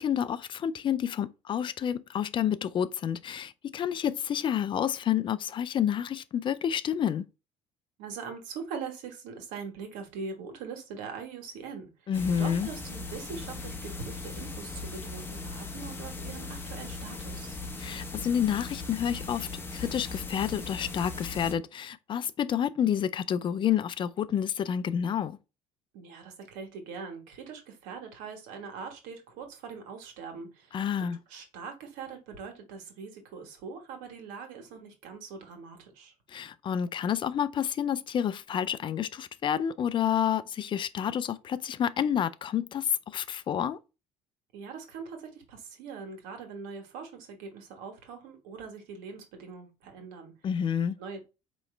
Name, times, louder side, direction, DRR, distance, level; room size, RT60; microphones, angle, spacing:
voice 1, 0.0-7.2 12.1-12.7 17.8-25.4 30.7-31.2 36.3-43.8 50.4-51.0, left 9 dB, 40° left, 0.4 m, -29 dB
voice 2, 8.0-12.1 12.4-17.6 25.9-36.1 44.5-50.3 51.0-51.2, right 5 dB, 90° right, 1.5 m, -42 dB
sound 1, 12.1-21.5, left 3 dB, 15° left, 0.8 m, -39 dB
4.8 x 3.0 x 3.2 m
cardioid pair, 110°, 13 cm